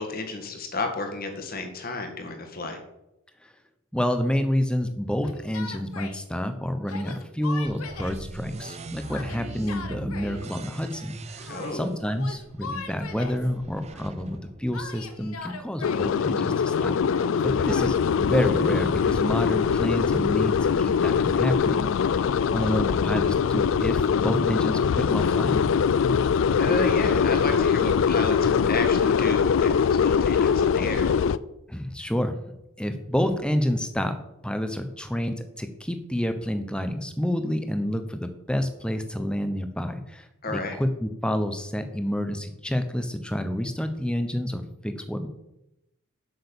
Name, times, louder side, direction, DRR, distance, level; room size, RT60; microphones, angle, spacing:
voice 1, 0.0-2.8 11.5-11.8 26.6-31.1 40.4-40.8, left 2 dB, 45° left, 5 dB, 1.6 m, -31 dB
voice 2, 3.9-16.9 17.4-22.2 22.5-25.6 31.7-32.5 32.8-34.2 34.4-45.3, equal, 5° left, 8 dB, 0.8 m, -29 dB
Yell, 5.2-6.2 6.9-8.2 9.1-10.4 11.4-11.9 12.2-13.5 14.7-16.2 17.1-17.9, left 4 dB, 80° left, 1.0 m, -39 dB
sound 1, 7.7-15.5, right 3 dB, 30° right, 0.5 m, -41 dB
sound 2, 15.8-31.4, left 6 dB, 60° left, 0.3 m, -22 dB
7.9 x 6.5 x 7.0 m, 0.89 s
head